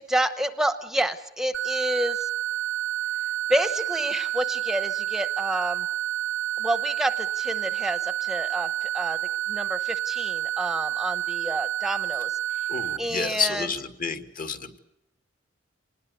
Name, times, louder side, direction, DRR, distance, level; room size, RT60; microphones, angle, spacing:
voice 1, 0.1-2.3 3.5-5.9 6.6-9.2 9.5-12.3 13.0-13.7, right 1 dB, 5° right, 10 dB, 0.8 m, -29 dB
sound 1, 1.5-13.0, right 13 dB, 75° right, 0.8 m, -29 dB
voice 2, 12.7-14.8, left 5 dB, 45° left, 8 dB, 2.0 m, -30 dB
26.5 x 20.0 x 8.1 m, 0.85 s
head